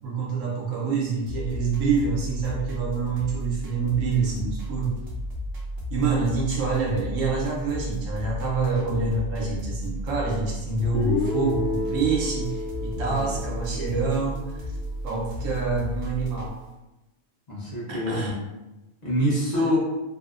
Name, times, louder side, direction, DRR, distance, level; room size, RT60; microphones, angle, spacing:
voice 1, 0.0-5.0 5.9-14.4 15.0-16.5 17.9-18.3 19.5-19.7, right 4 dB, 85° right, -3 dB, 1.0 m, -26 dB
sound 1, 1.3-16.5, equal, 60° right, 0.7 m, -34 dB
Guitar, 10.9-14.9, left 3 dB, 85° left, 1.0 m, -31 dB
voice 2, 17.5-18.3 19.0-19.8, left 1 dB, 40° left, -7 dB, 0.7 m, -26 dB
2.7 x 2.0 x 2.3 m, 1.0 s
omnidirectional pair, 1.3 m